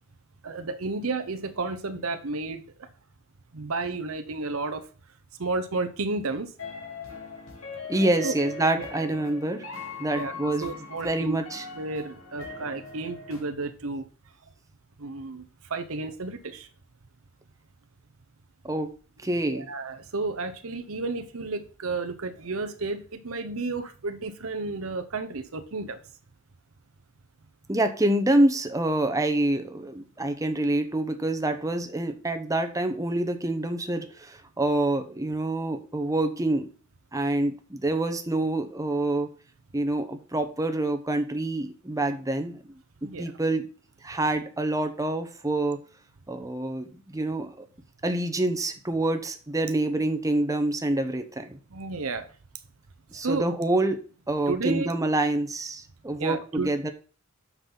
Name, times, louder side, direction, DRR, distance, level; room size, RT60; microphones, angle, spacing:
voice 1, 0.4-2.9 3.5-4.9 5.4-6.5 8.2-8.3 8.8-8.9 10.1-11.4 11.7-14.1 15.0-16.7 19.4-26.0 43.0-43.3 51.7-52.3 53.2-53.5 54.5-54.9 56.2-56.7, right 3 dB, 70° right, 0.9 m, -32 dB
sound 1, 6.6-13.4, left 4 dB, 75° left, 2.9 m, -40 dB
voice 2, 7.9-9.6 10.0-10.7 11.0-11.6 18.6-18.9 19.2-19.7 27.7-36.7 37.1-39.3 39.7-42.6 43.2-43.7 44.0-45.8 46.3-47.7 48.0-51.6 53.1-54.0 54.3-56.9, right 1 dB, 15° right, 0.9 m, -26 dB
8.1 x 6.0 x 3.9 m
head